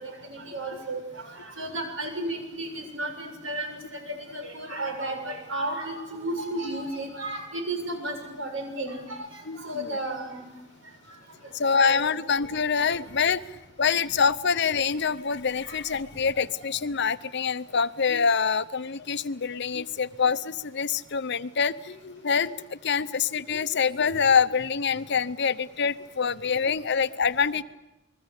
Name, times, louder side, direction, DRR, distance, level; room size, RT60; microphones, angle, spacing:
voice 1, 0.0-9.2 9.6-10.4 11.8-12.0 15.7-15.8 16.3-16.4, right 1 dB, 75° right, 5 dB, 7.0 m, -33 dB
voice 2, 9.4-10.0 11.5-27.6, left 6 dB, 60° left, 14 dB, 0.8 m, -25 dB
29.0 x 20.5 x 8.3 m, 0.95 s
head